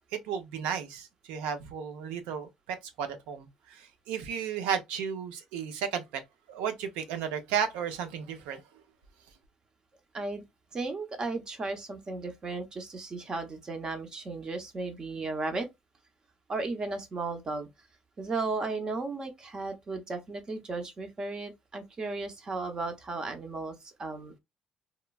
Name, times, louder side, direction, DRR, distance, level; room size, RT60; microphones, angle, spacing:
voice 1, 0.1-6.2 6.5-8.6, right 7 dB, 90° right, 0.6 m, -34 dB
voice 2, 10.7-15.7 16.5-17.7 18.2-24.4, right 3 dB, 35° right, 0.8 m, -35 dB
3.0 x 2.2 x 2.3 m
supercardioid pair, 85°, 2 cm